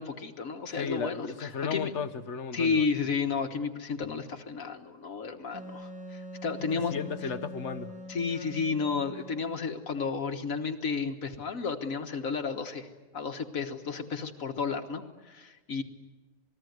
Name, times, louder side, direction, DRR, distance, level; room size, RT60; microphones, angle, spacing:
voice 1, 0.0-1.9 2.5-6.9 8.1-12.9 13.1-15.8, left 5 dB, 75° left, 1.8 m, -32 dB
voice 2, 0.7-2.9 6.7-7.9, left 6 dB, 60° left, 1.4 m, -35 dB
Wind instrument woodwind instrument, 5.5-9.6, right 1 dB, 5° right, 3.0 m, -43 dB
27.5 x 20.0 x 9.5 m
omnidirectional pair, 1.4 m